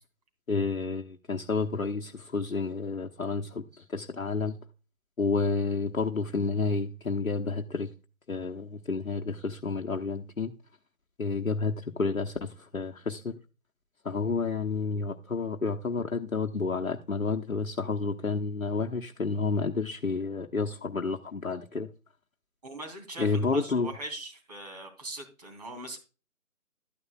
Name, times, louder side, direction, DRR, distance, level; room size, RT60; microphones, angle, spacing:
voice 1, 0.5-4.6 5.2-7.9 8.3-10.5 11.2-13.3 14.0-21.9 23.2-23.9, left 4 dB, 70° left, 1.1 m, -30 dB
voice 2, 22.6-26.0, right 2 dB, 30° right, 2.7 m, -41 dB
12.5 x 9.6 x 2.3 m
figure-of-eight pair, 155°, 42 cm